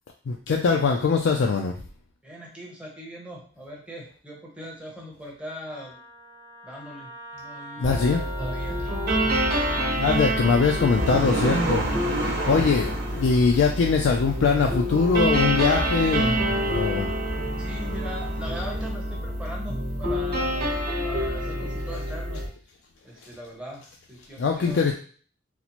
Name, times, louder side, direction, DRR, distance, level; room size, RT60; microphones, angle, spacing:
voice 1, 0.3-1.7 7.8-8.2 9.9-11.9 12.3-17.1 24.4-24.9, left 5 dB, 75° left, 1 dB, 0.4 m, -22 dB
voice 2, 2.2-5.9 6.6-8.8 17.6-20.7 21.0-22.4 23.0-23.8 24.1-24.9, equal, 5° right, -3 dB, 0.8 m, -40 dB
Wind instrument woodwind instrument, 5.7-10.0, equal, 20° left, 0.5 m, -41 dB
sound 1, 7.8-22.5, right 1 dB, 55° right, 1.1 m, -27 dB
sound 2, 9.9-18.9, right 2 dB, 75° right, 0.8 m, -32 dB
4.1 x 2.1 x 2.9 m, 0.43 s
head